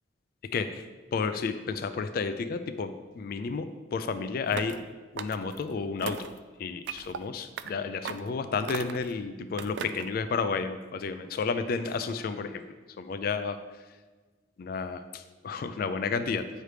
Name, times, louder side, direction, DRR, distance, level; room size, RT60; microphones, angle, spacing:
voice 1, 0.4-4.8 5.1-6.3 6.6-12.6 13.0-13.6 14.6-16.5, left 5 dB, 55° left, 9 dB, 0.3 m, -32 dB
sound 1, 4.5-4.8 5.2-5.6 6.0-6.4 6.9-7.2 7.6-7.7 8.0-8.3 8.7-9.1 9.6-10.1, right 7 dB, 70° right, 0.3 m, -38 dB
8.9 x 3.2 x 4.9 m, 1.4 s
head